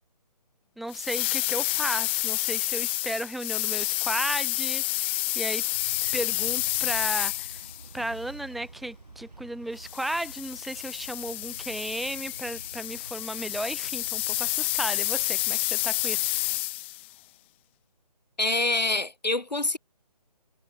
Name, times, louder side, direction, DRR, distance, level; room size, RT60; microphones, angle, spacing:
voice 1, 0.8-5.7 6.1-7.6 7.9-16.4, right 1 dB, ahead, 0.8 m, -34 dB
sound 1, 0.9-7.9 9.8-17.1, left 20 dB, 15° left, 1.3 m, -29 dB
sound 2, 5.7-16.6, right 3 dB, 70° right, 6.6 m, -48 dB
voice 2, 18.4-19.8, left 2 dB, 85° left, 2.0 m, -26 dB
figure-of-eight pair, 150°, 21 cm